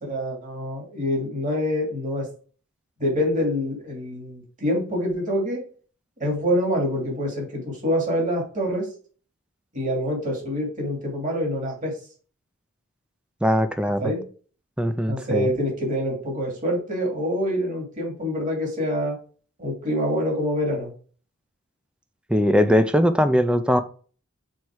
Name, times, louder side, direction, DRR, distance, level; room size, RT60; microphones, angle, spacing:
voice 1, 0.0-2.3 3.0-5.6 6.2-8.9 9.7-11.9 14.0-14.2 15.1-19.2 19.6-20.9, equal, 35° right, 2.6 m, -26 dB
voice 2, 13.4-14.1 14.8-15.5 22.3-23.8, equal, 5° right, 0.5 m, -20 dB
6.4 x 4.2 x 4.7 m
head